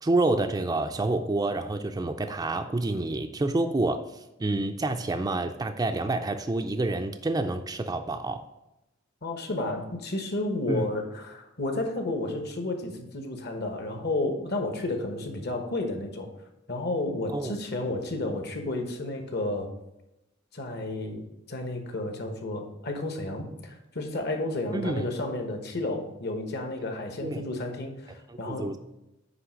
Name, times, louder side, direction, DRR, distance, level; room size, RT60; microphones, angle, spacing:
voice 1, 0.0-8.4 10.7-10.9 17.3-17.6 24.7-25.1 27.2-27.4 28.3-28.8, right 2 dB, 20° right, 6 dB, 0.4 m, -28 dB
voice 2, 9.2-16.3 16.7-19.7 20.5-28.7, left 2 dB, 55° left, 4 dB, 1.2 m, -32 dB
9.5 x 3.2 x 6.2 m, 0.90 s
head